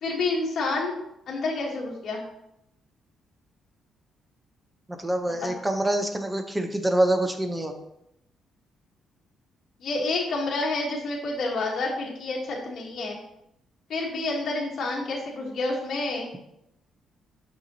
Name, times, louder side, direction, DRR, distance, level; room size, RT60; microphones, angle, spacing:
voice 1, 0.0-1.0 1.3-2.2 5.3-5.5 9.8-13.2 13.9-16.3, left 3 dB, 55° left, -4 dB, 1.4 m, -29 dB
voice 2, 5.0-7.7, right 1 dB, 15° right, 6 dB, 0.8 m, -25 dB
7.1 x 5.7 x 2.9 m, 0.80 s
cardioid pair, 90°, 0 cm